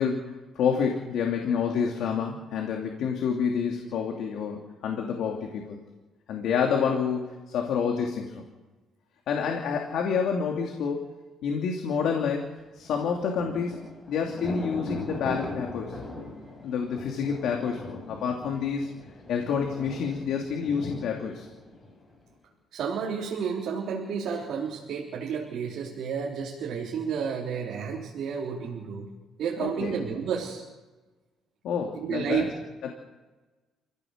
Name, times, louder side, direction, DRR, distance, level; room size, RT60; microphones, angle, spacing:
voice 1, 0.0-5.8 6.3-8.4 9.3-11.1 11.4-12.5 12.7-13.8 14.1-16.0 16.6-18.9 19.3-21.5 29.6-29.9 31.6-32.4 32.8-32.9, left 6 dB, 60° left, 1 dB, 2.8 m, -28 dB
Thunder, 12.8-22.3, left 2 dB, 25° left, 7.0 m, -40 dB
voice 2, 22.7-29.1 29.4-30.6 32.0-32.5, right 6 dB, 55° right, -3 dB, 3.8 m, -31 dB
28.5 x 16.5 x 6.7 m, 1.2 s
cardioid pair, 165°, 0 cm